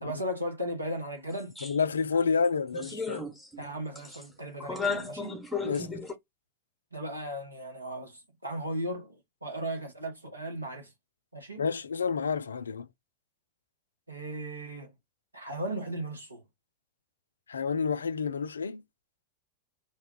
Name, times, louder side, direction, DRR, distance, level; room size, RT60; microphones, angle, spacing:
voice 1, 0.0-1.5 3.6-5.4 6.9-10.9 11.3-11.6 14.1-14.9 15.3-16.4, right 1 dB, 85° right, 1.0 m, -36 dB
voice 2, 1.6-3.3 5.6-5.9 11.6-12.9 17.5-18.8, left 5 dB, 70° left, 0.3 m, -29 dB
sound 1, 1.6-1.7 2.1-2.2 2.7-3.7 4.0-4.2 4.6-6.1, left 4 dB, 5° left, 0.8 m, -34 dB
2.6 x 2.3 x 3.6 m
figure-of-eight pair, 90°, 0 cm